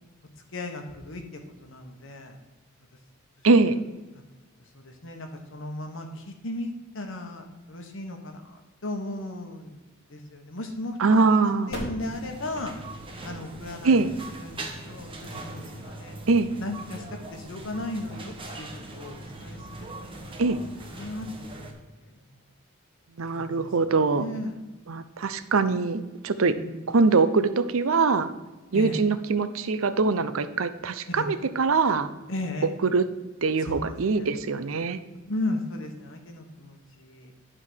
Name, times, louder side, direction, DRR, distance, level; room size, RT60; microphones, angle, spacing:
voice 1, 0.5-1.2 1.6-2.4 4.1-4.2 4.7-8.6 8.8-9.8 10.1-12.7 13.2-14.1 14.4-16.2 16.6-17.0 17.3-20.3 20.9-21.7 22.0-22.4 23.2-23.6 24.1-24.6 26.5-26.7 28.7-29.0 31.1-31.3 32.3-32.7 33.6-33.8 34.1-34.3 35.3-37.3, left 1 dB, 65° left, 4 dB, 1.3 m, -36 dB
voice 2, 3.4-3.8 11.0-11.7 13.8-14.1 16.3-16.5 20.4-20.6 23.2-24.2 24.9-26.5 26.9-28.3 28.7-32.1 32.8-33.1 33.4-35.0, right 4 dB, 75° right, 12 dB, 0.6 m, -23 dB
sound 1, 11.7-16.4, equal, 50° left, 1.9 m, -43 dB
sound 2, 12.0-21.7, right 2 dB, 25° right, 1.2 m, -41 dB
11.0 x 3.8 x 6.4 m, 1.2 s
head